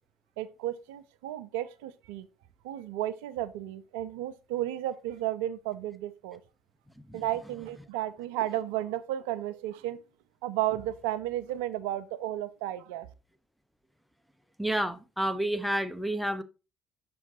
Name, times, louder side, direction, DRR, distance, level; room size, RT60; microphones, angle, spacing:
voice 1, 0.4-2.3 2.6-6.4 7.1-10.0 10.4-13.1, right 13 dB, 75° right, 0.4 m, -33 dB
voice 2, 14.6-16.4, right 1 dB, ahead, 0.7 m, -30 dB
6.0 x 3.8 x 4.1 m
hypercardioid pair, 60°, 0 cm